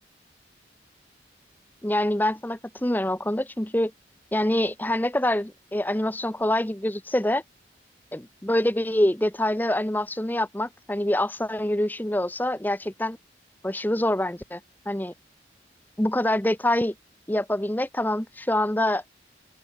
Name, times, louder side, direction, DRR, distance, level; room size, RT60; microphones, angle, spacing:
voice 1, 1.8-3.9 4.3-7.4 8.1-13.2 13.6-14.6 14.9-15.1 16.0-16.9 17.3-19.0, left 1 dB, 10° left, 0.9 m, -25 dB
open air
head